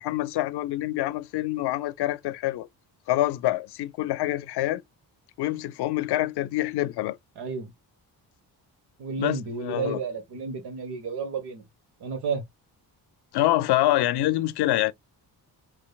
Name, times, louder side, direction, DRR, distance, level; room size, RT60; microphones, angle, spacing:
voice 1, 0.0-2.7 3.1-4.8 5.4-7.2 9.2-10.0 13.3-14.9, left 15 dB, 80° left, 0.5 m, -26 dB
voice 2, 7.4-7.7 9.0-11.6 12.0-12.4, right 5 dB, 90° right, 1.3 m, -31 dB
5.2 x 2.8 x 2.3 m
cardioid pair, 115°, 39 cm